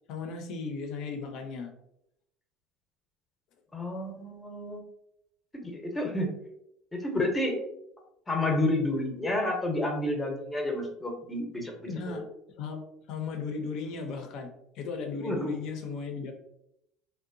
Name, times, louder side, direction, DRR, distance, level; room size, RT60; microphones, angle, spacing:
voice 1, 0.1-1.7 11.9-12.2 12.6-12.8 13.1-14.5 14.7-16.3, left 4 dB, 60° left, 4 dB, 0.5 m, -36 dB
voice 2, 3.7-4.8 5.5-6.3 6.9-7.6 8.3-12.2 15.2-15.6, left 1 dB, 15° left, 2 dB, 0.7 m, -30 dB
2.7 x 2.1 x 2.6 m, 0.79 s
hypercardioid pair, 85°, 0 cm